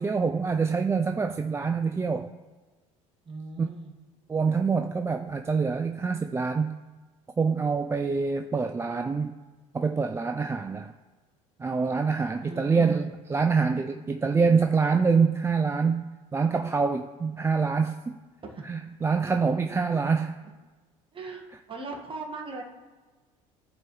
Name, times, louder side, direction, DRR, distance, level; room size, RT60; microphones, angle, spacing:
voice 1, 0.0-2.3 3.6-3.7 4.3-6.8 7.4-9.4 9.7-10.9 11.6-18.2 18.6-20.4, right 5 dB, 15° right, 6 dB, 0.3 m, -25 dB
voice 2, 3.3-3.9 12.4-13.1 18.4-18.6 21.1-22.6, right 3 dB, 30° right, 1 dB, 1.6 m, -38 dB
13.5 x 4.5 x 3.1 m, 1.3 s
hypercardioid pair, 75°, 17 cm